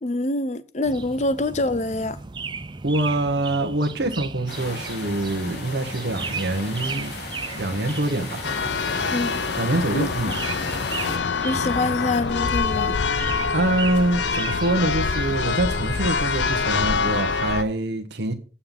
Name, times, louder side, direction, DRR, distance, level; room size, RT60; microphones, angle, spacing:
voice 1, 0.0-2.2 9.1-9.4 9.9-10.1 11.4-13.0, left 2 dB, 40° left, 0.6 m, -25 dB
sound 1, 0.8-17.2, right 4 dB, 25° right, 0.5 m, -36 dB
voice 2, 2.8-7.1 7.5-8.4 9.6-10.3 13.5-18.3, right 1 dB, 85° right, 1.3 m, -25 dB
sound 2, 4.5-11.2, left 2 dB, 65° left, 2.5 m, -35 dB
Church bell, 8.4-17.6, left 5 dB, 85° left, 0.7 m, -25 dB
8.7 x 5.7 x 7.5 m
head